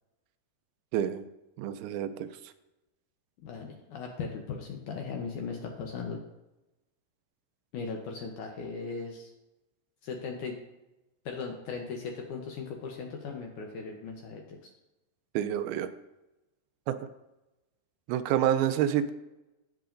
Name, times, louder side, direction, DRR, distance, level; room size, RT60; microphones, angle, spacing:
voice 1, 0.9-1.3 1.6-2.3 15.4-15.9 16.9-17.0 18.1-19.1, right 10 dB, 80° right, 10 dB, 2.4 m, -28 dB
voice 2, 3.4-6.2 7.7-9.3 10.0-10.6 11.3-14.7, left 5 dB, 80° left, 1 dB, 1.8 m, -38 dB
17.0 x 5.9 x 2.5 m, 0.99 s
omnidirectional pair, 4.6 m